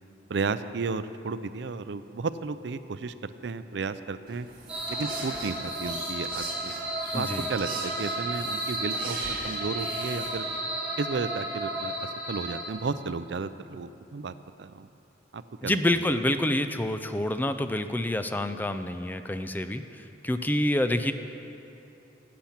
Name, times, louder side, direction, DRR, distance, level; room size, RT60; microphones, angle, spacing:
voice 1, 0.3-4.5 4.9-6.7 7.1-10.4 11.0-14.9 15.3-16.1, right 4 dB, 70° right, 13 dB, 0.5 m, -33 dB
sound 1, 4.3-10.6, right 4 dB, 55° right, 1.9 m, -41 dB
sound 2, 4.7-12.7, right 1 dB, 5° right, 2.5 m, -33 dB
voice 2, 7.1-7.5 15.6-21.1, left 1 dB, 10° left, 9 dB, 0.4 m, -27 dB
16.0 x 8.5 x 5.9 m, 2.7 s
head